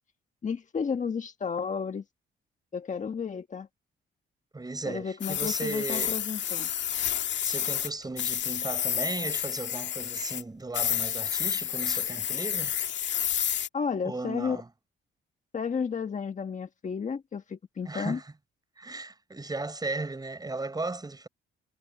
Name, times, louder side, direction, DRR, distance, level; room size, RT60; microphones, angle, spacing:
voice 1, 0.4-2.0 2.7-3.7 4.8-6.7 13.7-14.6 15.5-18.2, left 6 dB, 40° left, 1.6 m, -32 dB
voice 2, 4.5-6.2 7.4-12.7 14.0-14.7 17.9-18.3 18.8-21.3, right 3 dB, 20° right, 7.4 m, -36 dB
sound 1, 5.2-7.9 8.2-10.4 10.7-13.7, left 10 dB, 65° left, 1.9 m, -30 dB
cardioid pair, 90°, 20 cm